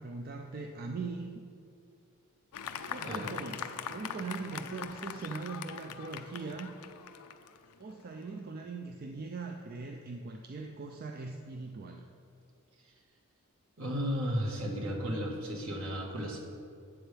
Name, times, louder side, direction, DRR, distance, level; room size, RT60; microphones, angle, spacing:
voice 1, 0.0-1.3 2.9-6.7 7.8-12.1, right 4 dB, 45° right, 3 dB, 0.4 m, -40 dB
Fireworks, 2.5-8.3, left 7 dB, 80° left, 0.5 m, -42 dB
voice 2, 13.8-16.4, equal, 65° right, -1 dB, 1.6 m, -34 dB
11.5 x 7.8 x 3.4 m, 2.4 s
head